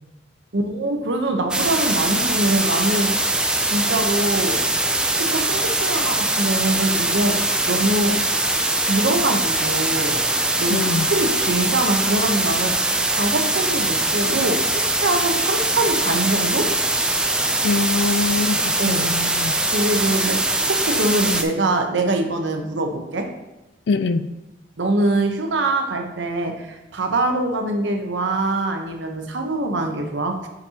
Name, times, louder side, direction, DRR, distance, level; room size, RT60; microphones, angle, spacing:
voice 1, 0.5-3.1 3.6-4.6 5.2-8.2 8.7-10.2 10.6-16.7 18.8-19.1 19.7-23.3 24.8-30.5, right 2 dB, 80° right, 4 dB, 0.9 m, -24 dB
sound 1, 1.5-21.4, right 2 dB, 5° right, 0.4 m, -22 dB
voice 2, 10.7-11.1 17.6-19.6 23.9-24.3, left 4 dB, 65° left, 12 dB, 0.4 m, -23 dB
7.1 x 5.3 x 2.9 m, 0.97 s
head